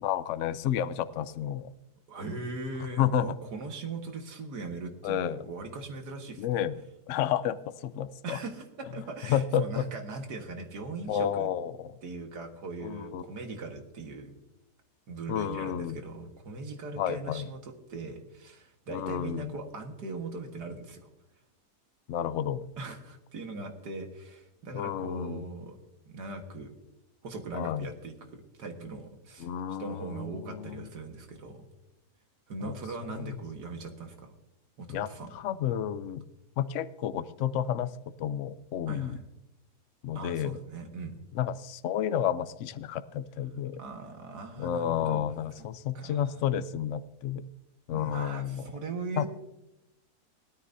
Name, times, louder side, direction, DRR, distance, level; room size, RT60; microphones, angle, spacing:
voice 1, 0.0-1.7 3.0-3.4 5.0-5.5 6.4-6.8 7.1-8.4 9.3-9.8 11.1-12.0 12.8-13.2 15.3-16.0 17.0-17.4 18.9-19.5 22.1-22.7 24.7-25.4 27.5-27.9 29.4-30.9 32.6-32.7 33.1-33.4 34.9-36.2 36.6-37.9 38.2-39.2 40.0-40.6 41.3-43.8 44.6-47.4 47.9-48.7 49.2-49.3, left 10 dB, 60° left, 13 dB, 0.8 m, -31 dB
voice 2, 2.1-6.6 8.2-11.5 12.0-14.3 15.1-21.1 22.8-25.8 26.0-26.7 27.2-29.5 29.8-31.7 32.5-34.3 34.8-35.3 38.9-39.2 40.1-41.2 43.8-45.3 45.6-45.7 45.9-46.4 47.9-49.3, right 3 dB, 85° right, 4 dB, 2.1 m, -40 dB
18.5 x 13.0 x 2.7 m, 0.92 s
omnidirectional pair, 1.7 m